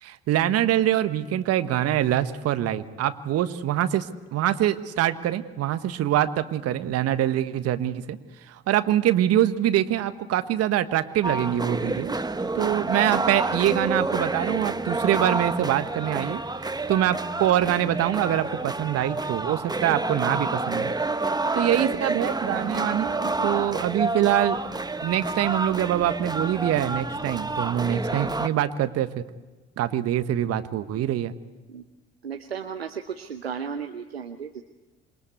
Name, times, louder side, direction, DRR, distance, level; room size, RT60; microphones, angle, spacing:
voice 1, 0.0-8.2 8.5-12.1 12.5-16.4 16.9-20.9 21.5-24.6 25.0-29.2 29.8-31.3, right 12 dB, 55° right, 11 dB, 1.5 m, -24 dB
sound 1, 11.2-28.5, right 3 dB, 15° right, 1.4 m, -29 dB
voice 2, 32.2-34.6, right 7 dB, 90° right, 6 dB, 1.0 m, -34 dB
27.5 x 22.0 x 8.4 m, 1.2 s
figure-of-eight pair, 50°, 30 cm